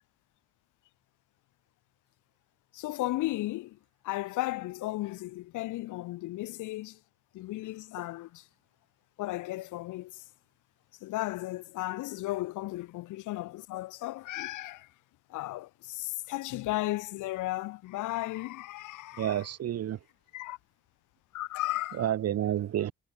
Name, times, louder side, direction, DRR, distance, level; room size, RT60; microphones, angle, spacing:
voice 1, 2.7-3.8 4.0-7.0 7.3-8.4 9.2-10.1 11.0-14.9 15.3-19.4 20.3-20.6 21.3-22.1, left 17 dB, 80° left, 0.6 m, -35 dB
voice 2, 19.2-20.0 22.0-22.9, right 11 dB, 55° right, 0.9 m, -29 dB
cardioid pair, 90°, 30 cm